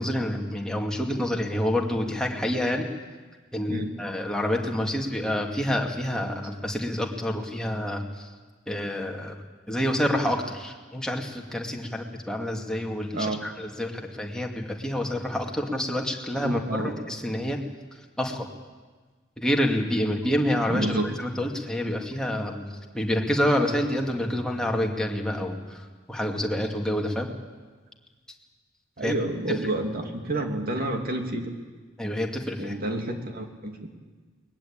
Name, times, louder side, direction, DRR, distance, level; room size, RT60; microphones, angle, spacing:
voice 1, 0.0-2.9 3.5-8.3 8.7-9.4 9.7-17.6 18.2-18.5 19.4-27.3 29.0-29.1 32.0-32.7, left 1 dB, 5° left, 1 dB, 2.3 m, -28 dB
voice 2, 13.1-13.4 16.4-16.9 20.7-21.1 29.0-31.5 32.6-33.9, right 1 dB, 50° right, 3 dB, 2.8 m, -29 dB
22.5 x 20.5 x 8.8 m, 1.4 s
head